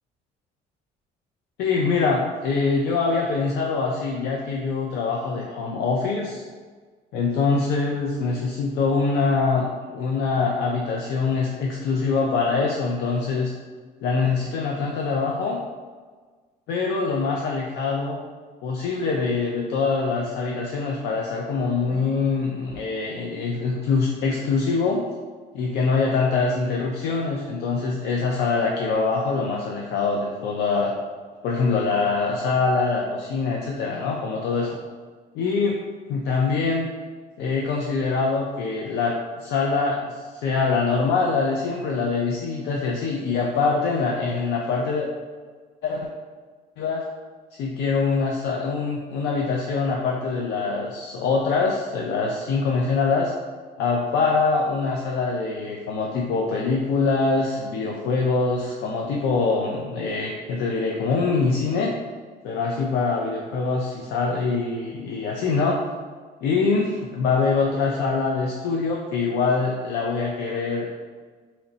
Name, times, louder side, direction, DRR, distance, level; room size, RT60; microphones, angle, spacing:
voice 1, 1.6-6.4 7.1-13.5 14.0-15.6 16.7-18.2 18.6-25.0 25.5-30.9 31.4-34.8 35.3-35.8 36.1-36.9 37.4-45.1 45.8-46.1 46.8-47.0 47.6-53.3 53.8-61.9 62.4-65.8 66.4-70.9, left 4 dB, 80° left, -1 dB, 0.5 m, -24 dB
3.1 x 2.9 x 3.9 m, 1.5 s
cardioid pair, 110°, 17 cm